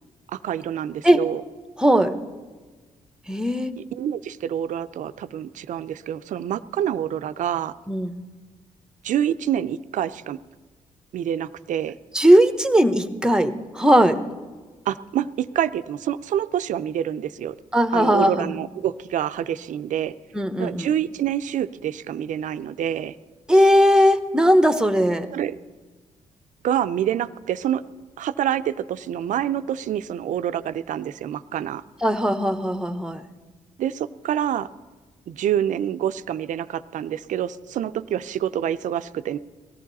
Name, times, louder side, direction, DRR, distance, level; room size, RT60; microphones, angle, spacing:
voice 1, 0.3-1.4 3.8-7.7 9.0-10.4 11.1-12.0 14.9-17.6 17.9-20.1 20.6-23.2 25.3-25.5 26.6-27.8 28.2-31.8 33.8-34.7 35.3-39.4, right 10 dB, 70° right, 13 dB, 0.5 m, -27 dB
voice 2, 1.8-2.2 3.3-3.7 7.9-8.2 12.1-14.2 17.7-18.5 20.3-20.9 23.5-25.3 32.0-33.2, equal, 5° right, 10 dB, 1.1 m, -18 dB
18.0 x 13.5 x 4.1 m, 1.3 s
supercardioid pair, 65°, 13 cm